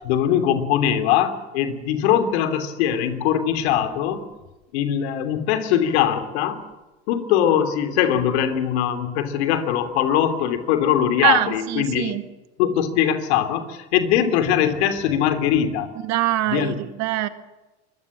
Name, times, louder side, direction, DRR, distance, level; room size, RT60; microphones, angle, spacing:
voice 1, 0.0-4.2 4.7-6.6 7.1-12.2 12.6-15.9 16.5-16.7, left 9 dB, 70° left, 9 dB, 3.1 m, -21 dB
voice 2, 11.2-12.2 16.0-17.3, right 15 dB, 55° right, 10 dB, 1.9 m, -23 dB
24.5 x 22.0 x 7.4 m, 1.1 s
hypercardioid pair, 85°, 33 cm